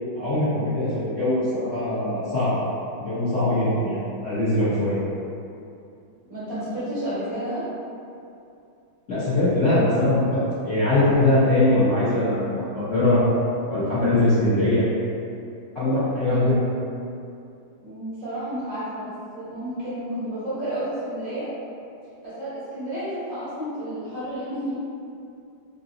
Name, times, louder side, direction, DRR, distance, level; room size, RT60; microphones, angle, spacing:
voice 1, 0.1-2.6 3.0-5.0 9.1-13.2 13.7-14.8 15.7-16.6, left 1 dB, 45° left, -15 dB, 1.3 m, -21 dB
voice 2, 6.3-7.6 16.3-16.5 17.8-21.5 22.2-24.8, right 1 dB, 50° right, -12 dB, 1.4 m, -31 dB
3.8 x 2.3 x 2.7 m, 2.6 s
omnidirectional pair, 2.1 m